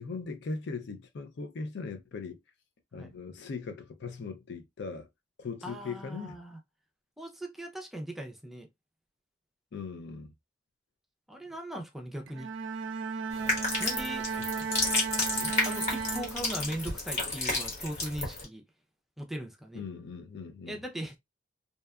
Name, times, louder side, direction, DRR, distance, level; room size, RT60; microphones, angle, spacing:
voice 1, 0.0-2.4 2.9-5.1 5.4-6.4 9.7-10.3 14.3-14.6 15.4-15.6 19.7-20.8, left 4 dB, 60° left, 0.4 m, -39 dB
voice 2, 5.6-6.6 7.2-8.7 11.3-12.5 13.8-14.3 15.6-18.6 19.2-19.8 20.6-21.2, equal, ahead, 0.4 m, -39 dB
Bowed string instrument, 12.3-16.9, right 5 dB, 75° right, 0.3 m, -35 dB
sound 1, 13.3-18.5, left 2 dB, 40° left, 1.1 m, -31 dB
2.7 x 2.2 x 2.3 m
head